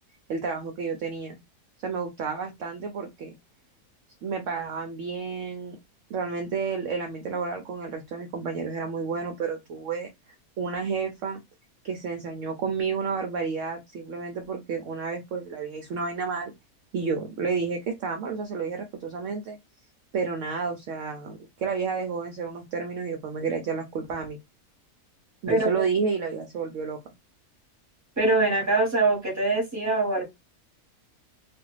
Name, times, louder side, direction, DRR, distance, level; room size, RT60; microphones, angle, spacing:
voice 1, 0.3-1.4 1.8-3.3 4.2-5.8 6.1-11.4 11.8-16.5 16.9-19.6 20.1-24.4 25.4-27.0, right 5 dB, 65° right, 0.8 m, -31 dB
voice 2, 25.5-25.8 28.2-30.2, right 2 dB, 15° right, 1.0 m, -23 dB
2.5 x 2.4 x 3.1 m
omnidirectional pair, 1.6 m